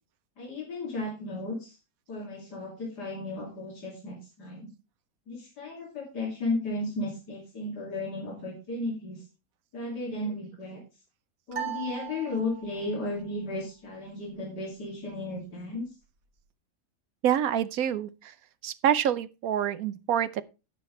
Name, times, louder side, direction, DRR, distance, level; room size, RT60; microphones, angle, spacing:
voice 1, 0.4-1.8 2.1-4.7 5.3-9.2 9.7-10.8 11.5-15.9, left 2 dB, 80° left, 3.1 m, -34 dB
sound 1, 11.5-13.0, right 11 dB, 80° right, 1.9 m, -38 dB
voice 2, 17.2-18.1 18.6-20.4, right 10 dB, 65° right, 1.1 m, -26 dB
16.0 x 5.9 x 3.2 m
omnidirectional pair, 1.8 m